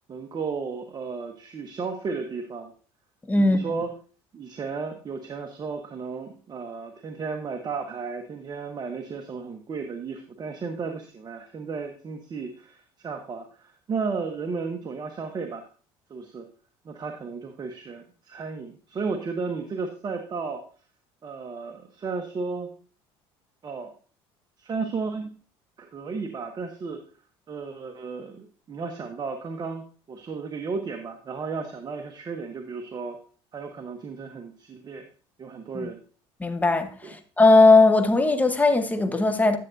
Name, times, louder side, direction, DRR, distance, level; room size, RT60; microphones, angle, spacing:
voice 1, 0.1-2.7 3.4-3.9 4.3-15.6 16.1-16.5 16.8-20.6 21.2-22.7 23.6-23.9 24.6-25.3 25.8-27.0 27.5-33.2 33.5-35.1 35.4-36.0 37.0-37.2, right 4 dB, 35° right, 1.0 m, -34 dB
voice 2, 3.3-3.6 35.7-35.9 36.4-36.9 37.4-39.6, left 3 dB, 15° left, 1.0 m, -18 dB
10.5 x 7.4 x 2.6 m
supercardioid pair, 95°, 12 cm